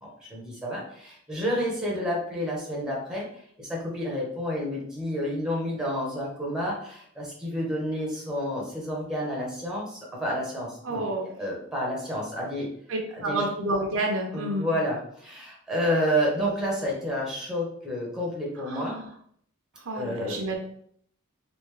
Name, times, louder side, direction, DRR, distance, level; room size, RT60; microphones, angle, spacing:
voice 1, 0.0-11.0 11.4-12.7 13.1-13.5 14.3-19.0 19.9-20.4, equal, 5° right, -3 dB, 0.9 m, -30 dB
voice 2, 10.8-11.3 12.9-14.7 18.7-19.1 19.8-20.6, right 1 dB, 65° right, 1 dB, 0.7 m, -29 dB
3.4 x 2.5 x 3.2 m, 0.64 s
head